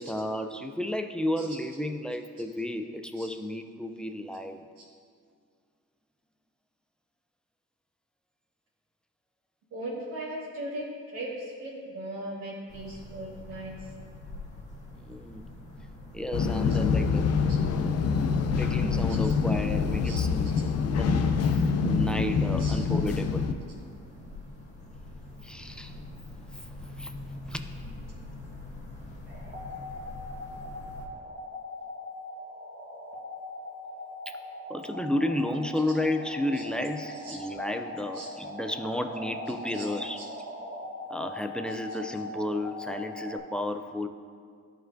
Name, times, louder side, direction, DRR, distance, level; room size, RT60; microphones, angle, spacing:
voice 1, 0.0-4.6 14.9-15.4 16.1-17.3 18.6-20.5 20.9-23.5 25.4-26.0 26.5-26.7 27.0-27.1 27.5-27.6 34.3-34.4 34.7-40.2 41.1-44.1, left 1 dB, 5° left, 6 dB, 0.4 m, -32 dB
voice 2, 9.7-13.8 20.0-20.2 22.6-22.8 37.2-37.4 38.1-38.3 39.7-39.8 40.2-40.3, right 1 dB, 90° right, -9 dB, 1.6 m, -38 dB
sound 1, 12.7-31.1, left 2 dB, 25° left, 1.7 m, -44 dB
sound 2, 16.3-23.5, left 5 dB, 55° left, 0.5 m, -26 dB
sound 3, 29.3-43.4, left 1 dB, 35° right, 1.4 m, -41 dB
12.5 x 4.5 x 2.6 m, 2.1 s
cardioid pair, 90°, 30 cm